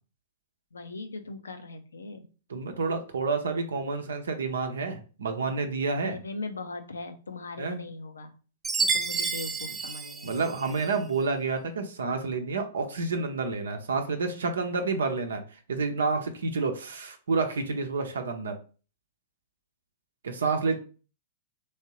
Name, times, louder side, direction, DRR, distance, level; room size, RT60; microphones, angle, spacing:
voice 1, 0.7-2.3 6.0-8.4 8.8-10.4, left 3 dB, 75° left, 8 dB, 0.6 m, -39 dB
voice 2, 2.5-6.2 7.6-7.8 10.2-15.4 15.7-18.6 20.2-20.8, right 4 dB, 70° right, 6 dB, 0.7 m, -29 dB
Chime, 8.6-11.0, right 4 dB, 15° right, 0.5 m, -30 dB
3.5 x 3.1 x 2.9 m, 0.36 s
figure-of-eight pair, 105°, 0 cm